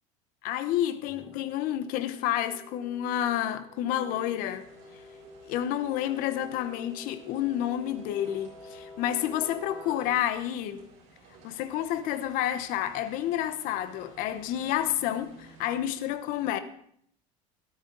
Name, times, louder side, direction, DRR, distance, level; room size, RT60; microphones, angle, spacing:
voice 1, 0.4-4.7 4.9-5.0 5.5-10.8 11.4-16.6, left 11 dB, 60° left, 1.0 m, -30 dB
sound 1, 1.1-11.0 13.2-15.9, left 2 dB, 10° right, 1.4 m, -49 dB
sound 2, 4.3-15.7, right 4 dB, 45° right, 4.7 m, -57 dB
13.0 x 12.5 x 3.9 m
cardioid pair, 150°, 16 cm